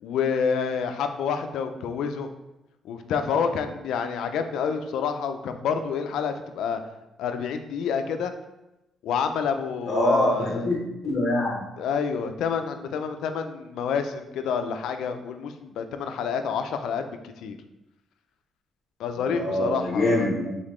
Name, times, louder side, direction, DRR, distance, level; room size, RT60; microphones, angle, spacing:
voice 1, 0.0-2.3 2.8-6.8 7.2-8.3 9.0-10.6 11.8-17.6 19.0-20.3, left 6 dB, 80° left, 8 dB, 0.4 m, -28 dB
voice 2, 9.9-11.7 19.2-20.6, left 1 dB, 40° left, -5 dB, 1.0 m, -24 dB
3.9 x 3.7 x 3.1 m, 0.95 s
cardioid pair, 90°, 0 cm